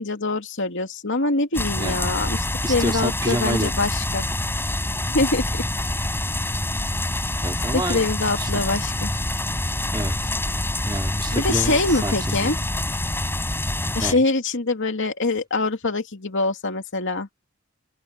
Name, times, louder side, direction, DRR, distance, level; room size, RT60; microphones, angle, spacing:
voice 1, 0.0-4.2 5.1-5.5 7.7-9.1 11.3-12.6 13.9-17.3, left 2 dB, 60° left, 2.6 m, -24 dB
sound 1, 1.5-14.1, left 1 dB, 10° left, 6.5 m, -26 dB
voice 2, 1.8-2.1 2.6-3.7 7.4-8.0 8.4-8.7 9.9-10.3 10.8-12.6 14.0-14.2, right 1 dB, 20° right, 3.9 m, -28 dB
open air
head